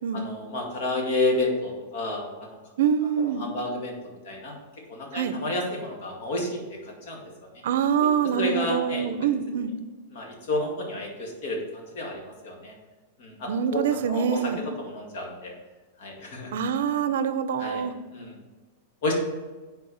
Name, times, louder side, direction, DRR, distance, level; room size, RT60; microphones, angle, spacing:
voice 1, 0.1-2.6 3.4-4.5 4.9-7.3 8.4-9.1 10.1-12.7 13.2-13.8 14.1-14.5 14.8-15.5 16.0-16.5 17.6-17.9 18.1-18.4 19.0-19.1, left 2 dB, 50° left, 0 dB, 2.0 m, -30 dB
voice 2, 2.8-3.5 5.1-5.3 7.6-9.7 13.5-14.6 16.5-17.9, right 7 dB, 65° right, 12 dB, 0.6 m, -25 dB
7.8 x 4.6 x 5.4 m, 1.3 s
supercardioid pair, 175°, 0 cm